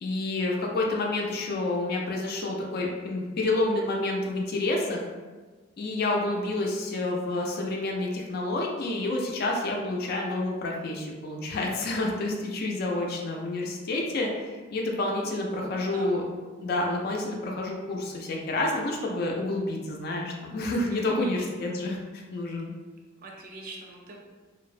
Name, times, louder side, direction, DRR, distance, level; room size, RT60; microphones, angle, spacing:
voice 1, 0.0-5.0 5.8-16.2 16.6-22.0 22.3-22.7, left 2 dB, 50° left, -1 dB, 0.3 m, -29 dB
voice 2, 15.2-16.1 20.9-21.3 23.2-24.2, right 2 dB, 45° right, -1 dB, 0.4 m, -43 dB
2.5 x 2.0 x 2.4 m, 1.3 s
head